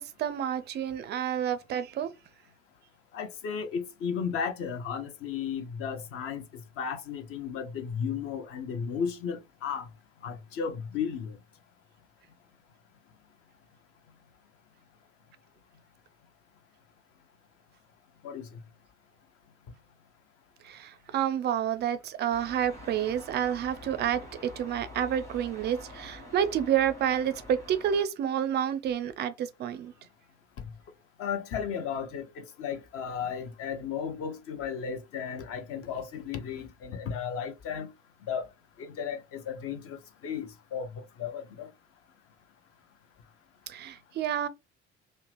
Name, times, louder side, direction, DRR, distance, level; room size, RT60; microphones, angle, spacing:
voice 1, 0.0-2.1 20.6-29.9 43.7-44.5, right 9 dB, 30° right, 0.4 m, -29 dB
voice 2, 3.1-6.4 6.8-9.8 10.2-11.4 18.2-18.4 31.2-37.9 38.3-38.4 38.8-40.0 40.2-40.9 41.2-41.7, left 7 dB, 40° left, 0.6 m, -34 dB
sound 1, 22.3-28.0, left 1 dB, 10° left, 1.1 m, -46 dB
2.8 x 2.0 x 3.0 m
figure-of-eight pair, 55°, 36 cm